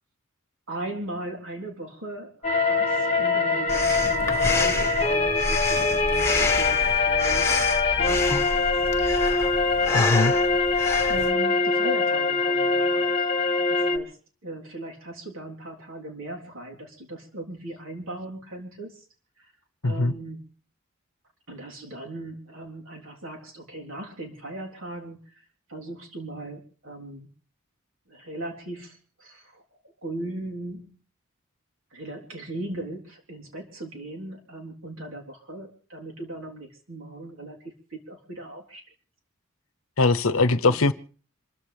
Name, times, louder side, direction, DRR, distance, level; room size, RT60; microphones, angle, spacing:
voice 1, 0.7-7.5 7.8-8.9 9.7-9.9 11.1-13.4 13.7-19.1 19.4-19.5 19.8-20.4 21.5-25.4 25.7-27.3 28.1-29.6 30.0-31.0 31.9-38.8 40.6-40.9, right 1 dB, 75° right, 3.7 m, -38 dB
sound 1, 2.4-14.0, left 3 dB, 30° left, 1.3 m, -23 dB
Breathing, 3.7-11.3, left 3 dB, 15° left, 1.3 m, -29 dB
voice 2, 9.9-10.3 19.8-20.1 40.0-40.9, left 3 dB, 80° left, 0.8 m, -21 dB
27.0 x 14.5 x 3.4 m
head